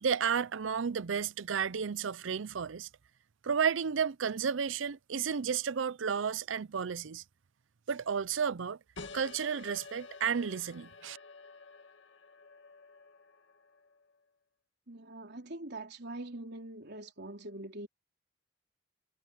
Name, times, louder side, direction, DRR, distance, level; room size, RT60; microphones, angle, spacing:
voice 1, 0.0-2.9 3.4-7.2 7.9-8.8 9.1-11.2, right 6 dB, 90° right, 0.5 m, -32 dB
sound 1, 9.0-14.2, left 4 dB, 70° left, 2.0 m, -51 dB
voice 2, 14.9-17.9, right 2 dB, 60° right, 4.1 m, -43 dB
head